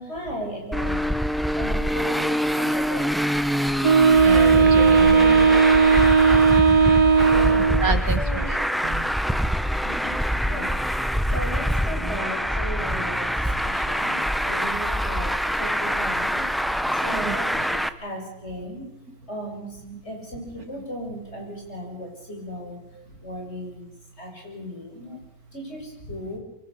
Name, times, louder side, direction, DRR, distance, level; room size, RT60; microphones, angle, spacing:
voice 1, 0.0-3.1 5.5-5.9 7.3-7.9 8.2-8.5 9.8-18.9 19.3-26.4, equal, 40° left, 1 dB, 7.2 m, -36 dB
Traffic noise roadway noise, 0.7-17.9, equal, ahead, 0.4 m, -25 dB
Wind instrument woodwind instrument, 3.8-7.9, right 5 dB, 25° right, 1.0 m, -16 dB
voice 2, 4.2-5.6 7.8-9.1 13.3-13.4 15.0-15.2 17.1-17.4 19.1-19.2 19.9-20.0 23.0-23.1 25.1-25.2, right 5 dB, 65° right, 8 dB, 2.3 m, -31 dB
26.0 x 23.5 x 6.8 m, 0.90 s
omnidirectional pair, 1.7 m